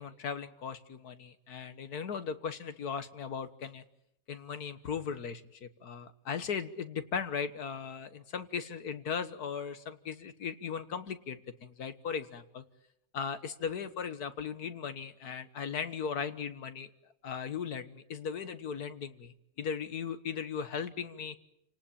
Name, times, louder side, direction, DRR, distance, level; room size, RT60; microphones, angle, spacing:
voice 1, 0.0-3.8 4.3-12.6 13.1-16.9 17.2-21.4, left 6 dB, 80° left, 10 dB, 1.9 m, -37 dB
29.0 x 19.0 x 8.7 m, 0.81 s
omnidirectional pair, 1.6 m